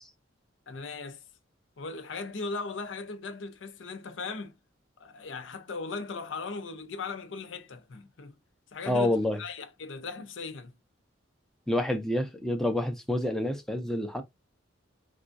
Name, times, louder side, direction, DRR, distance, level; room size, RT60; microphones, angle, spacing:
voice 1, 0.7-1.3 1.8-4.6 5.0-8.3 8.7-10.7, left 4 dB, 75° left, 0.6 m, -38 dB
voice 2, 8.9-9.4 11.7-14.2, left 1 dB, ahead, 0.5 m, -28 dB
3.6 x 2.3 x 2.5 m
head